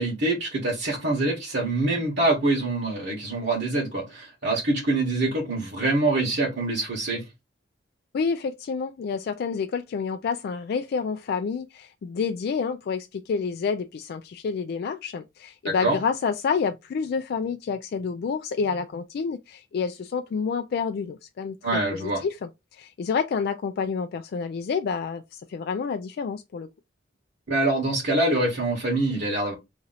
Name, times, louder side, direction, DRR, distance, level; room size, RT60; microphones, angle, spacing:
voice 1, 0.0-7.2 15.6-16.0 21.6-22.2 27.5-29.5, right 2 dB, 65° right, 1.3 m, -25 dB
voice 2, 8.1-21.6 21.9-22.5 22.8-26.7, left 5 dB, 55° left, 0.3 m, -29 dB
3.0 x 2.6 x 3.9 m
head